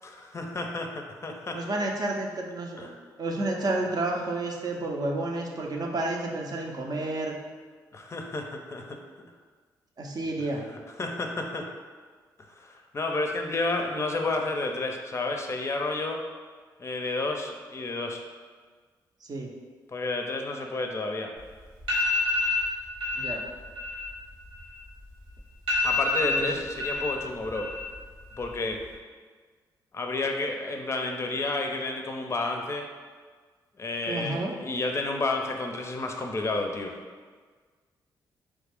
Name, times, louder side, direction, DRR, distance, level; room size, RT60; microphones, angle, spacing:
voice 1, 0.0-1.6 2.8-3.0 7.9-9.0 10.7-11.7 12.4-16.2 16.8-18.2 19.9-21.3 25.8-27.7 28.4-28.8 29.9-32.9 33.8-37.0, left 2 dB, 30° left, 3 dB, 0.5 m, -31 dB
voice 2, 1.5-7.3 10.0-10.6 19.2-19.5 23.1-23.4 26.2-26.5 34.1-34.5, right 2 dB, 50° right, 0 dB, 0.6 m, -31 dB
sound 1, 21.4-21.5 21.8-22.6 23.0-23.3 23.6-25.1 25.4-25.5 25.7-27.1 27.4-28.0 28.3-28.8, left 3 dB, 85° right, 1.4 m, -28 dB
3.1 x 2.4 x 3.5 m, 1.5 s
supercardioid pair, 55°, 9 cm